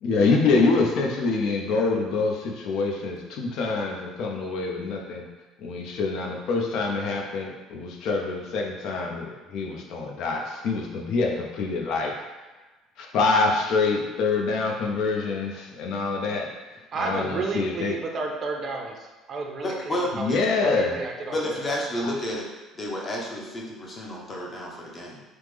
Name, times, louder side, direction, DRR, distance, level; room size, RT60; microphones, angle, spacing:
voice 1, 0.0-5.2 5.6-12.1 13.0-16.5 17.0-17.9 20.1-21.0, left 3 dB, 70° left, 1 dB, 0.5 m, -25 dB
voice 2, 16.9-21.8, right 3 dB, 45° right, 1 dB, 0.5 m, -32 dB
voice 3, 19.6-20.4 21.3-22.5 22.7-25.2, left 1 dB, 30° left, -2 dB, 0.7 m, -31 dB
3.1 x 2.0 x 3.4 m, 1.2 s
supercardioid pair, 95°, 0 cm